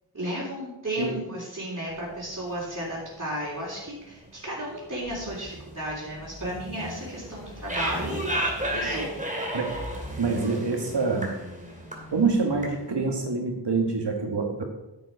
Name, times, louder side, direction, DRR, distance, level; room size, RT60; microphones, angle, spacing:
voice 1, 0.1-8.2 8.7-9.2, right 1 dB, 40° right, -8 dB, 3.6 m, -34 dB
sound 1, 1.9-2.5 2.9-3.0 3.2-3.3 3.6-3.8 4.1-12.9, right 1 dB, 15° right, 2.5 m, -34 dB
voice 2, 10.2-11.4 12.1-14.6, right 4 dB, 70° right, 3 dB, 1.7 m, -26 dB
9.3 x 8.1 x 4.8 m, 0.99 s
wide cardioid pair, 55°, 43 cm